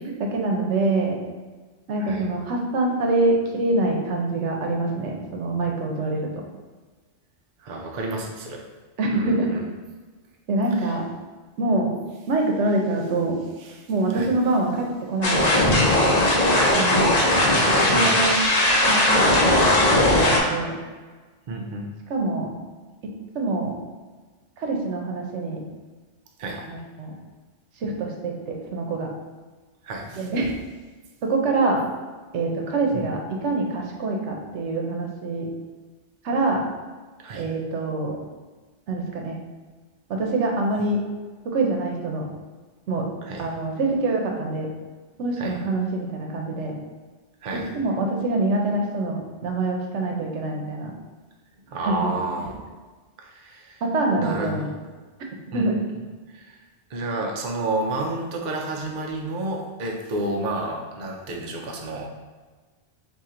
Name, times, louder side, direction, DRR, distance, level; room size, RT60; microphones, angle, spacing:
voice 1, 0.2-1.2 1.9-6.3 9.0-9.5 10.5-11.0 11.6-11.9 12.3-13.4 13.9-16.0 16.7-17.1 17.7-18.4 18.9-20.8 22.1-22.5 23.3-23.7 24.6-25.6 26.7-27.1 27.8-29.1 30.2-30.5 31.2-31.8 32.3-35.5 36.2-36.6 37.4-38.2 38.9-39.4 40.1-41.0 41.4-42.3 42.9-43.0 43.4-44.7 45.2-46.8 47.7-50.9 51.8-52.1 53.8-54.7 55.5-55.8, right 2 dB, 80° right, 1 dB, 1.0 m, -25 dB
voice 2, 7.6-8.7 9.1-9.6 10.8-11.0 13.6-13.9 14.1-14.3 17.9-18.3 21.5-21.9 26.4-26.7 29.8-30.3 32.9-33.1 37.2-37.5 43.2-43.5 45.4-45.6 47.4-47.7 51.7-52.5 53.2-53.8 54.2-54.7 55.5-55.7 56.3-56.6 56.9-62.1, right 2 dB, 55° right, 1 dB, 0.6 m, -31 dB
sound 1, 15.2-20.4, left 1 dB, 40° left, 0.8 m, -18 dB
4.3 x 2.7 x 3.7 m, 1.4 s
omnidirectional pair, 1.2 m